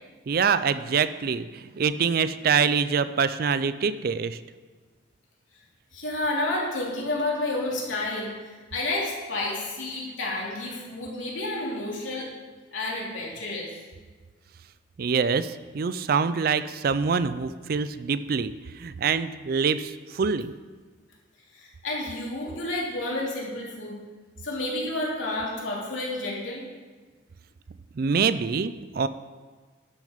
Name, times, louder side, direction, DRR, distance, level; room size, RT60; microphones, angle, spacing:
voice 1, 0.3-4.4 15.0-20.5 28.0-29.1, right 6 dB, 50° right, 13 dB, 0.4 m, -25 dB
voice 2, 5.9-12.3 12.7-13.7 21.5-23.9 24.4-26.6, left 2 dB, 80° left, -4 dB, 2.8 m, -30 dB
12.0 x 6.7 x 5.1 m, 1.4 s
head